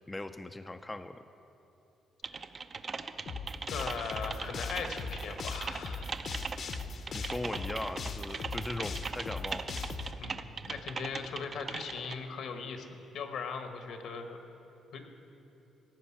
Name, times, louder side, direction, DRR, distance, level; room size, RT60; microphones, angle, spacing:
voice 1, 0.1-1.2 7.1-9.7, left 2 dB, 15° left, 8 dB, 0.4 m, -39 dB
Typing, 2.2-12.1, right 5 dB, 40° right, 0.5 m, -40 dB
sound 1, 3.3-10.1, left 4 dB, 55° left, 0.8 m, -39 dB
voice 2, 3.7-6.1 10.2-12.9 13.1-14.4 14.9-15.1, left 5 dB, 75° left, 6 dB, 1.2 m, -39 dB
15.5 x 5.4 x 8.6 m, 3.0 s
cardioid pair, 90°, 0 cm